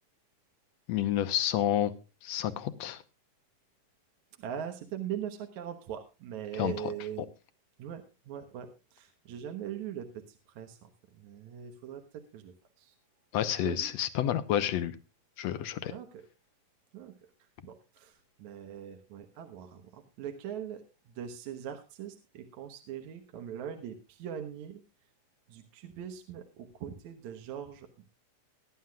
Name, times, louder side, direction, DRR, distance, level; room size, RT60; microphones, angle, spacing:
voice 1, 0.9-1.9 2.2-3.0 6.5-6.9 13.3-15.0 15.4-15.9, left 11 dB, 70° left, 12 dB, 1.8 m, -29 dB
voice 2, 4.4-7.3 7.8-13.0 13.6-13.9 15.9-16.3 16.9-24.8 25.5-28.1, right 9 dB, 65° right, 5 dB, 2.4 m, -41 dB
21.0 x 11.0 x 2.4 m, 0.29 s
omnidirectional pair, 3.8 m